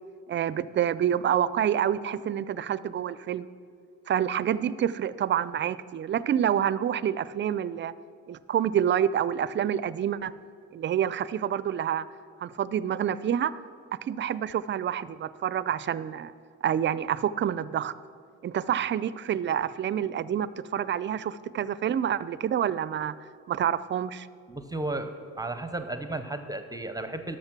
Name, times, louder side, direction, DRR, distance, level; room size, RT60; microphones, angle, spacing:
voice 1, 0.3-3.5 4.1-7.9 8.3-10.3 10.7-12.1 12.4-13.5 13.9-16.3 16.6-17.9 18.4-23.1 23.5-24.3, right 9 dB, 40° right, 17 dB, 0.4 m, -27 dB
voice 2, 24.5-27.4, right 2 dB, 10° right, 8 dB, 0.7 m, -34 dB
12.5 x 6.3 x 6.0 m, 2.3 s
cardioid pair, 90°, 30 cm